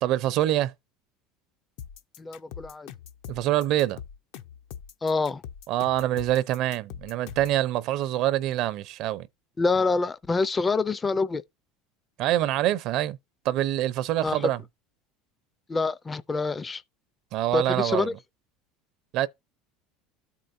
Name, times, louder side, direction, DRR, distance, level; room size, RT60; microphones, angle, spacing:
voice 1, 0.0-0.7 3.3-4.0 5.7-9.3 12.2-13.2 13.4-14.6 17.3-18.1 19.1-19.3, right 13 dB, 55° right, 0.5 m, -25 dB
sound 1, 1.8-7.6, left 9 dB, 70° left, 0.8 m, -42 dB
voice 2, 2.2-2.9 5.0-5.4 9.6-11.4 14.2-14.5 15.7-16.8 17.5-18.1, left 3 dB, 20° left, 0.4 m, -26 dB
13.0 x 4.5 x 2.6 m
supercardioid pair, 125°, 0 cm